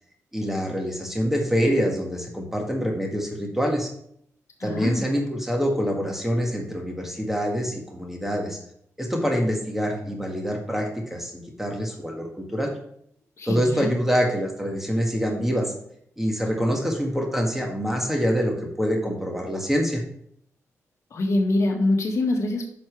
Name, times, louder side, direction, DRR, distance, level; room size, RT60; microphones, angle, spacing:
voice 1, 0.3-3.9 4.6-8.6 9.0-12.7 13.5-15.7 16.2-20.0, equal, 5° right, 1 dB, 1.9 m, -25 dB
voice 2, 4.6-5.1 13.4-13.9 21.1-22.7, left 2 dB, 60° left, 1 dB, 1.6 m, -24 dB
10.0 x 6.0 x 3.4 m, 0.68 s
cardioid pair, 105°, 6 cm